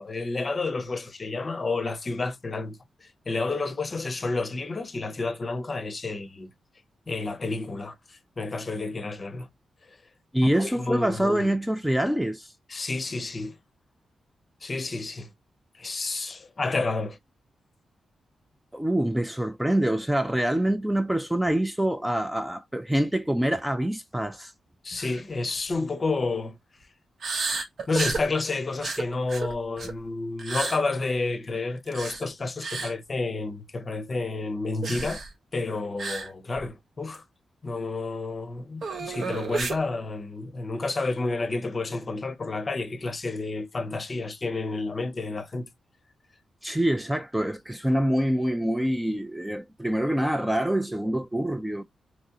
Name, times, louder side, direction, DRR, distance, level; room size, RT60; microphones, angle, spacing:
voice 1, 0.0-6.5 7.1-9.5 10.6-11.5 12.7-13.6 14.6-15.3 15.8-17.2 24.8-26.6 27.9-35.2 35.5-37.2 37.6-45.7, left 3 dB, 35° left, 0.7 m, -30 dB
voice 2, 10.3-12.5 18.7-24.5 46.6-51.8, right 1 dB, 5° right, 0.4 m, -25 dB
sound 1, 25.0-25.2 25.6-25.7 27.2-28.3 28.8-30.0 30.4-30.8 31.9-32.2 32.6-32.9 34.8-35.3 36.0-36.3 36.6-36.7 37.1-37.2 38.8-39.8, right 4 dB, 60° right, 0.9 m, -31 dB
3.6 x 3.1 x 2.7 m
wide cardioid pair, 115°, 0 cm